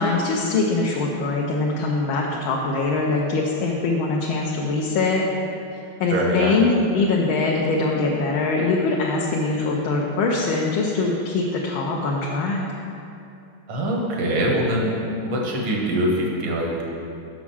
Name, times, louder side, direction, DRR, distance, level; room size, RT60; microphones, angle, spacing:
voice 1, 0.0-5.2 6.0-12.6, left 3 dB, 75° left, -2 dB, 1.5 m, -22 dB
voice 2, 6.1-6.5 13.7-14.9 15.2-16.9, right 1 dB, 85° right, -2 dB, 2.3 m, -23 dB
6.1 x 6.1 x 7.0 m, 2.7 s
omnidirectional pair, 2.4 m